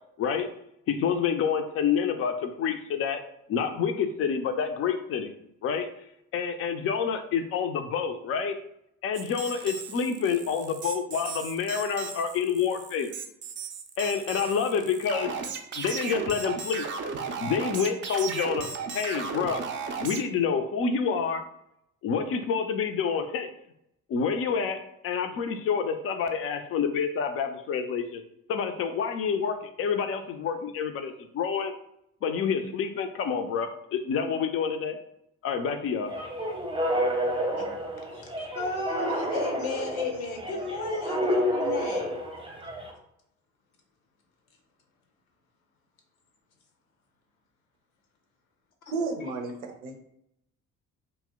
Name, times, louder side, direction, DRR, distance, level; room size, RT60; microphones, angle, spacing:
voice 1, 0.9-3.2 3.5-5.3 5.6-5.9 6.3-8.6 9.0-13.1 14.0-15.3 15.7-16.9 17.4-19.6 20.0-21.4 22.0-23.5 24.1-28.2 28.5-31.7 32.2-35.0 35.4-36.1, left 6 dB, 35° left, 7 dB, 0.4 m, -28 dB
sound 1, 9.1-20.2, right 5 dB, 30° right, 0.4 m, -36 dB
sound 2, 36.1-42.9, equal, 15° right, 0.8 m, -30 dB
voice 2, 38.5-42.2, left 3 dB, 80° left, 3 dB, 0.6 m, -34 dB
voice 3, 48.9-49.5 49.8-50.0, right 3 dB, 75° right, 4 dB, 0.6 m, -31 dB
2.8 x 2.0 x 3.4 m, 0.76 s
figure-of-eight pair, 45°, 42 cm